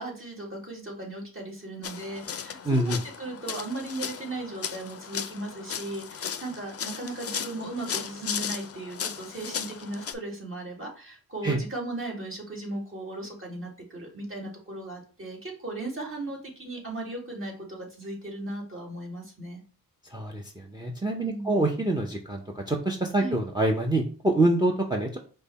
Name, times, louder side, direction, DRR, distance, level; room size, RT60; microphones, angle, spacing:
voice 1, 0.0-19.6 21.2-21.6 23.2-23.4, right 2 dB, 35° right, -2 dB, 1.9 m, -37 dB
sound 1, 1.8-10.1, left 7 dB, 40° left, 0.4 m, -36 dB
voice 2, 2.6-3.0 11.4-11.6 20.0-25.2, right 2 dB, 10° right, 3 dB, 0.6 m, -26 dB
5.3 x 2.2 x 4.1 m, 0.38 s
wide cardioid pair, 80°, 36 cm